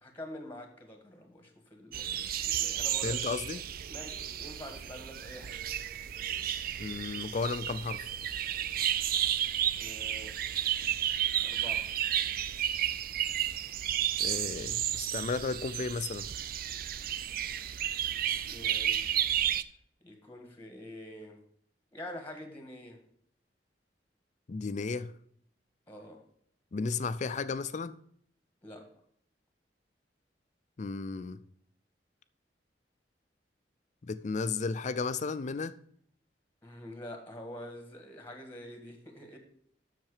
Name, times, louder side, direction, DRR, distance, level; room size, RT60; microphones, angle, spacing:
voice 1, 0.0-5.6 9.8-10.4 11.4-11.9 18.4-19.1 20.0-21.4 21.9-23.0 25.9-26.2 28.6-28.9 36.6-39.4, left 1 dB, 10° left, 1.6 m, -46 dB
sound 1, 1.9-19.6, right 10 dB, 55° right, 0.4 m, -32 dB
voice 2, 3.0-3.6 6.8-8.1 14.2-16.3 24.5-25.1 26.7-27.9 30.8-31.4 34.0-35.8, left 4 dB, 45° left, 0.4 m, -34 dB
7.4 x 6.6 x 4.9 m
head